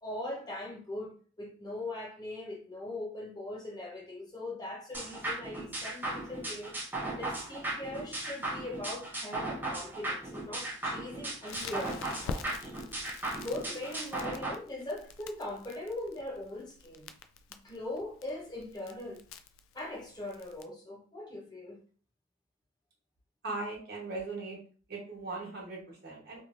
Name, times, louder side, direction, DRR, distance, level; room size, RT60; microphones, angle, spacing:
voice 1, 0.0-12.8 13.4-17.1 17.5-19.2 19.7-21.8, left 1 dB, 20° left, 0.8 m, -41 dB
sound 1, 4.9-14.5, right 2 dB, 10° right, 0.5 m, -37 dB
Crackle, 11.5-20.6, left 4 dB, 90° left, 0.3 m, -47 dB
voice 2, 23.4-24.6 24.9-26.4, right 3 dB, 55° right, 1.1 m, -39 dB
3.1 x 2.4 x 2.5 m
head